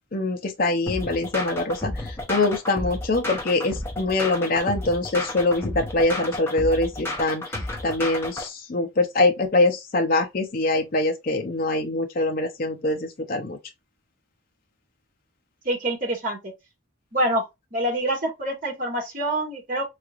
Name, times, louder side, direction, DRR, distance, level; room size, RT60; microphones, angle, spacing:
voice 1, 0.1-13.6, left 2 dB, 45° left, 0.6 m, -24 dB
sound 1, 0.9-8.5, left 1 dB, 10° left, 0.8 m, -32 dB
voice 2, 15.6-16.5 17.1-17.5 17.7-19.8, right 1 dB, 40° right, 1.5 m, -26 dB
3.6 x 3.2 x 2.4 m
head